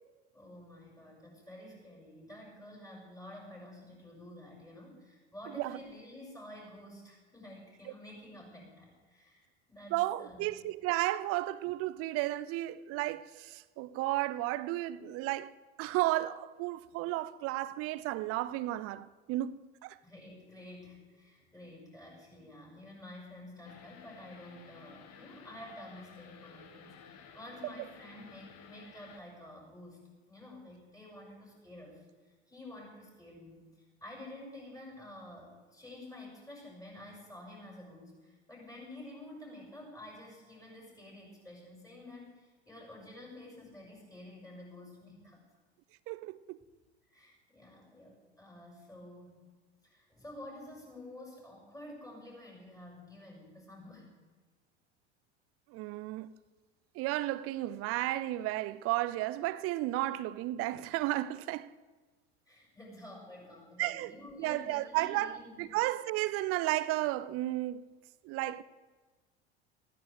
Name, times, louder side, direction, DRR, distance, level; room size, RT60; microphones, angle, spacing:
voice 1, 0.3-10.5 20.0-30.0 30.3-45.4 47.1-49.4 49.8-54.1 62.5-65.7, left 1 dB, 10° left, 6.0 m, -50 dB
voice 2, 9.9-15.5 15.8-20.0 27.6-27.7 46.1-46.6 55.7-56.3 56.9-61.7 63.8-67.9 68.2-68.6, right 16 dB, 45° right, 0.6 m, -33 dB
sound 1, 23.6-29.2, left 6 dB, 50° left, 1.6 m, -54 dB
19.5 x 15.0 x 3.4 m
figure-of-eight pair, 75°, 34 cm